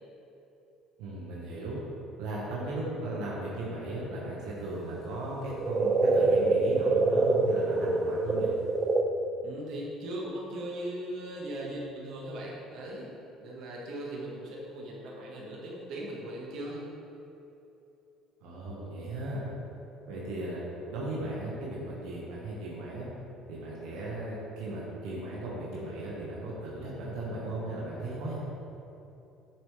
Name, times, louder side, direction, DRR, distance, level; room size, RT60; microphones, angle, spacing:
voice 1, 1.0-1.8 2.2-8.5 18.4-19.4 20.1-20.6 20.9-23.1 23.5-28.4, right 1 dB, 85° right, -5 dB, 1.5 m, -36 dB
sound 1, 5.3-9.0, right 3 dB, 25° right, 0.5 m, -25 dB
voice 2, 9.4-13.1 13.4-16.9, right 1 dB, 65° right, -3 dB, 1.6 m, -39 dB
8.1 x 7.0 x 3.4 m, 2.8 s
cardioid pair, 105°, 0 cm